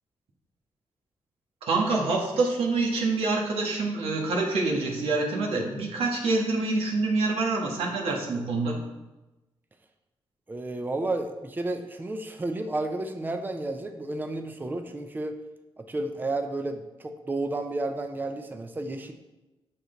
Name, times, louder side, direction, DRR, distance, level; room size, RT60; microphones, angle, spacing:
voice 1, 1.6-8.8, right 3 dB, 90° right, -1 dB, 1.7 m, -26 dB
voice 2, 10.5-15.4 15.8-19.1, right 2 dB, 20° right, 6 dB, 0.6 m, -32 dB
7.7 x 6.5 x 4.0 m, 1.0 s
cardioid pair, 95°, 10 cm